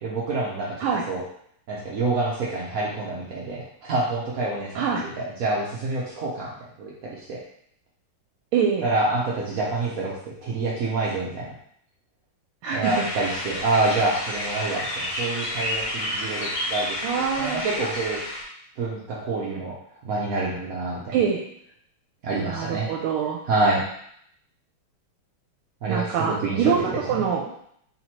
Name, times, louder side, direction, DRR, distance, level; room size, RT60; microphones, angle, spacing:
voice 1, 0.0-1.2 1.7-6.5 6.8-7.4 8.8-10.2 10.4-11.5 12.7-18.2 18.8-19.8 20.0-21.2 22.2-22.9 23.5-23.8 25.8-27.0, right 3 dB, 65° right, -5 dB, 0.8 m, -27 dB
voice 2, 8.5-8.9 12.6-13.1 17.0-17.6 21.1-21.4 22.4-23.4 25.9-27.5, right 6 dB, 80° right, 0 dB, 1.5 m, -24 dB
sound 1, 12.8-18.4, left 1 dB, 55° left, 1.7 m, -30 dB
4.1 x 3.0 x 4.3 m, 0.68 s
omnidirectional pair, 2.4 m